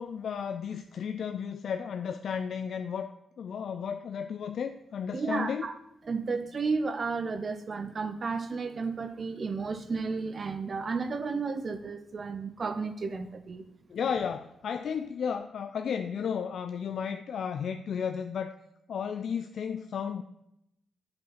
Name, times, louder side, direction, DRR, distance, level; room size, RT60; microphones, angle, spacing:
voice 1, 0.0-5.7 13.9-18.5 18.9-20.2, left 7 dB, 70° left, 8 dB, 0.4 m, -33 dB
voice 2, 5.1-5.7 6.0-13.6, right 4 dB, 45° right, 9 dB, 0.7 m, -32 dB
8.0 x 5.6 x 5.8 m, 0.84 s
cardioid pair, 100°, 0 cm